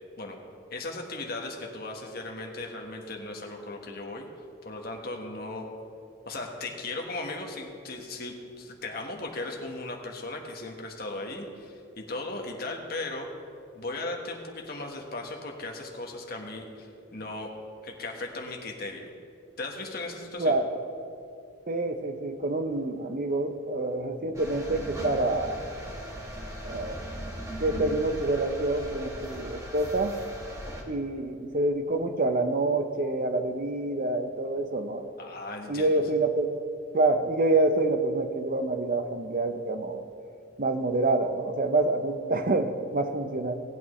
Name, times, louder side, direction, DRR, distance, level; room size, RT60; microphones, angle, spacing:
voice 1, 0.7-4.3 4.6-5.6 6.2-13.3 13.7-17.5 17.8-19.1 19.6-20.6 35.2-36.0, left 2 dB, 50° left, 1 dB, 1.4 m, -37 dB
voice 2, 21.7-25.6 26.6-27.0 27.6-30.2 30.9-35.1 35.7-36.5 36.9-40.0 40.6-43.6, right 2 dB, 45° right, 7 dB, 0.7 m, -27 dB
sound 1, 24.3-30.8, equal, 15° right, 1.3 m, -39 dB
18.0 x 8.7 x 3.2 m, 2.6 s
head